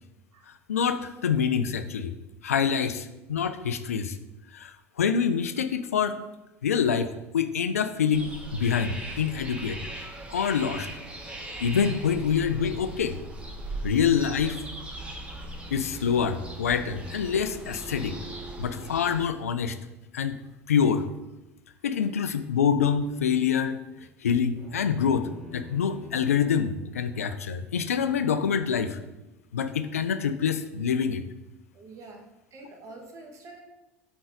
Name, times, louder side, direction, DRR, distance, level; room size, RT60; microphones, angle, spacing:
voice 1, 0.7-2.1 2.4-4.2 4.5-6.2 6.6-9.8 10.3-10.9 11.6-13.2 13.8-14.6 15.7-18.2 18.6-19.8 20.1-20.4 20.7-21.1 21.8-29.0 29.5-31.2, left 7 dB, 80° left, 10 dB, 0.4 m, -26 dB
sound 1, 8.1-19.3, right 1 dB, 15° right, 1.0 m, -39 dB
sound 2, 24.5-26.8, left 3 dB, ahead, 2.1 m, -46 dB
voice 2, 31.7-32.2 32.5-33.6, right 3 dB, 40° right, 1 dB, 1.3 m, -46 dB
5.1 x 3.9 x 4.9 m, 0.98 s
figure-of-eight pair, 70°, 8 cm